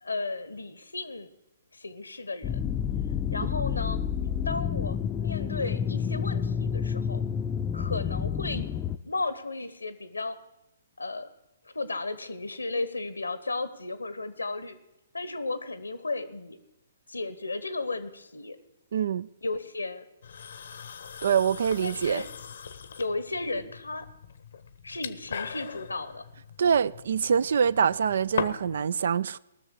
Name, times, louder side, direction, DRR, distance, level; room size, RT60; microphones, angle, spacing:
voice 1, 0.0-1.3 1.8-2.6 3.3-4.0 4.4-7.2 7.7-8.7 9.0-10.4 11.0-11.3 11.7-14.8 15.1-16.6 17.1-18.6 19.4-20.0 21.8-22.3 23.0-24.1 24.8-26.2, left 3 dB, 85° left, 1.1 m, -34 dB
sound 1, 2.4-9.0, left 7 dB, 20° left, 0.5 m, -29 dB
voice 2, 18.9-19.3 21.2-22.2 26.6-29.4, right 7 dB, 60° right, 0.4 m, -25 dB
sound 2, 20.2-28.8, left 6 dB, 65° left, 0.8 m, -40 dB
18.5 x 6.5 x 6.4 m
figure-of-eight pair, 125°, 0 cm